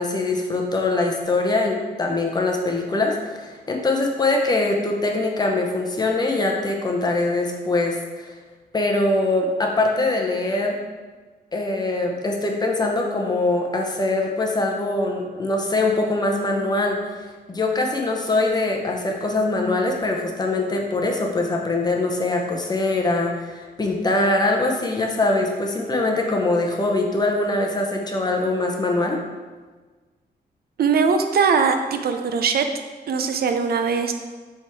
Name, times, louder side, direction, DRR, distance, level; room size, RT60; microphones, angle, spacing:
voice 1, 0.0-8.3 8.7-10.8 11.5-17.2 17.5-29.2, left 2 dB, 25° left, 1 dB, 0.7 m, -23 dB
voice 2, 30.8-32.6 33.1-34.1, right 5 dB, 60° right, 6 dB, 0.5 m, -20 dB
7.3 x 3.6 x 4.6 m, 1.4 s
wide cardioid pair, 180°, 18 cm